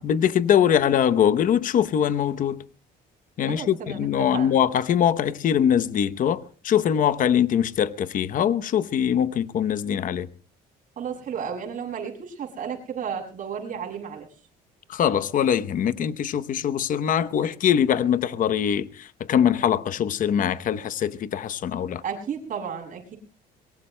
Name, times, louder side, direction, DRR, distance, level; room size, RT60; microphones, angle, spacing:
voice 1, 0.0-2.6 3.4-10.3 14.9-22.0, left 9 dB, 50° left, 0.8 m, -22 dB
voice 2, 3.5-4.6 11.0-14.3 22.0-23.2, right 7 dB, 50° right, 7.4 m, -33 dB
23.0 x 22.5 x 2.2 m
cardioid pair, 110°, 17 cm